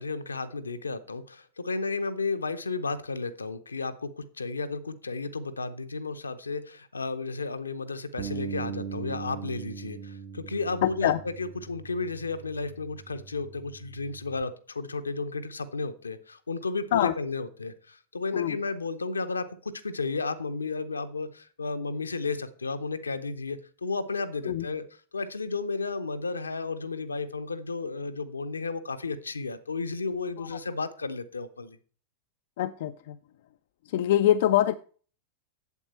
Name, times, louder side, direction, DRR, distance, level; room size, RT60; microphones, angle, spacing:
voice 1, 0.0-24.8 25.1-31.8, left 4 dB, 75° left, 11 dB, 0.8 m, -33 dB
Bass guitar, 8.2-14.4, right 7 dB, 45° right, 0.9 m, -40 dB
voice 2, 10.8-11.2 16.9-17.2 18.3-18.6 24.4-24.7 30.4-30.6 32.6-33.2 33.9-34.8, left 12 dB, 55° left, 11 dB, 0.4 m, -24 dB
8.2 x 7.9 x 4.2 m, 0.41 s
figure-of-eight pair, 90°, 0 cm